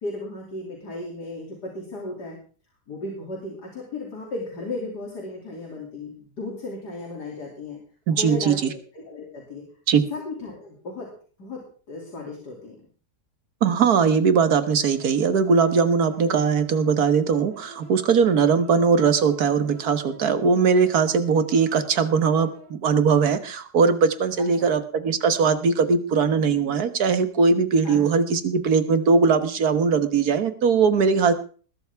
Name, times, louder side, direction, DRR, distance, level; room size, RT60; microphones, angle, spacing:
voice 1, 0.0-2.4 2.9-7.8 8.1-9.6 10.1-11.1 11.4-12.7 24.6-24.7 27.8-28.1, left 2 dB, 80° left, -1 dB, 3.4 m, -35 dB
voice 2, 8.1-8.7 9.9-10.0 13.6-31.3, right 5 dB, 70° right, 10 dB, 1.8 m, -20 dB
sound 1, 14.6-22.7, right 2 dB, 60° left, 8.1 m, -48 dB
20.5 x 12.0 x 3.5 m, 0.41 s
omnidirectional pair, 1.7 m